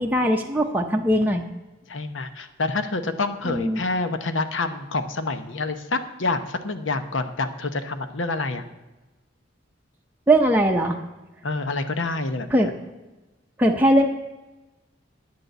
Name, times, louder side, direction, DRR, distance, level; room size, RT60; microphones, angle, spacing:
voice 1, 0.0-1.4 3.4-3.8 10.3-11.0 12.5-12.7 13.6-14.1, right 1 dB, 10° right, 1 dB, 0.6 m, -20 dB
voice 2, 1.9-8.6 11.4-12.7, left 3 dB, 85° left, 9 dB, 0.9 m, -27 dB
9.5 x 6.8 x 7.9 m, 1.1 s
head